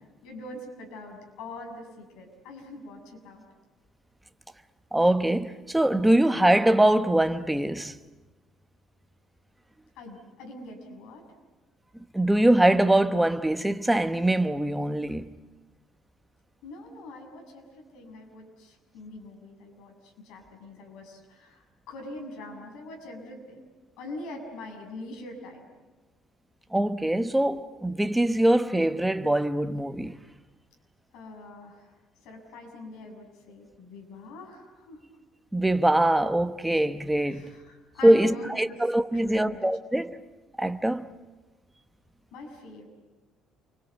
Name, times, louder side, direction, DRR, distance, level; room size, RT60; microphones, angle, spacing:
voice 1, 0.2-3.4 10.0-11.2 16.6-23.6 24.0-25.6 31.1-31.9 32.2-35.1 37.2-38.8 39.1-39.6 42.3-42.9, left 2 dB, 85° left, 6.8 m, -43 dB
voice 2, 4.9-7.9 12.1-15.3 26.7-30.2 35.5-37.5 38.0-40.2 40.6-41.0, right 1 dB, 5° right, 0.9 m, -23 dB
28.5 x 23.5 x 8.3 m
cardioid pair, 160°, 0 cm